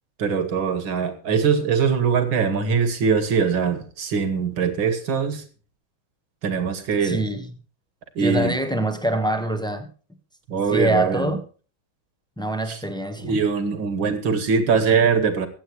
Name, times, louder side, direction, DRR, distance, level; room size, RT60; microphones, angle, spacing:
voice 1, 0.2-5.4 6.4-7.2 8.2-8.6 10.5-11.3 12.7-12.8 13.2-15.5, right 6 dB, 70° right, 2.5 m, -22 dB
voice 2, 7.0-7.5 8.2-9.9 10.7-11.4 12.4-13.4, right 1 dB, 5° left, 1.0 m, -24 dB
22.5 x 8.4 x 3.2 m
omnidirectional pair, 2.3 m